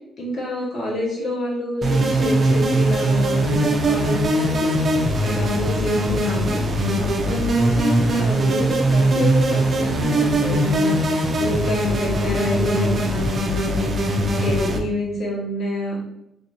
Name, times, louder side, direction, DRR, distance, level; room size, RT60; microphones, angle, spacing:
voice 1, 0.2-4.7 5.2-6.6 7.0-10.9 11.4-13.8 14.3-16.0, left 1 dB, 60° left, -4 dB, 1.5 m, -27 dB
sound 1, 1.8-14.8, right 1 dB, 45° right, 0.6 m, -21 dB
3.3 x 2.8 x 2.8 m, 0.83 s
cardioid pair, 90°, 0 cm